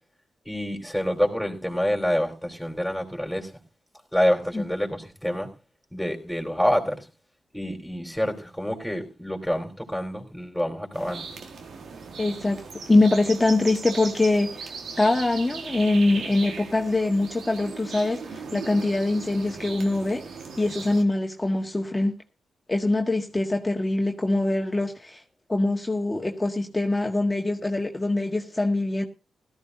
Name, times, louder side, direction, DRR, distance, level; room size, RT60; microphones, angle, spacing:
voice 1, 0.5-3.5 4.1-5.5 5.9-7.1 7.5-11.3, equal, ahead, 4.1 m, -27 dB
sound 1, 10.9-21.0, right 5 dB, 75° right, 1.7 m, -38 dB
voice 2, 12.2-14.7 15.0-20.2 20.6-22.2 22.7-25.2 25.5-29.0, left 2 dB, 20° left, 1.8 m, -23 dB
17.0 x 14.0 x 2.8 m
cardioid pair, 55°, 0 cm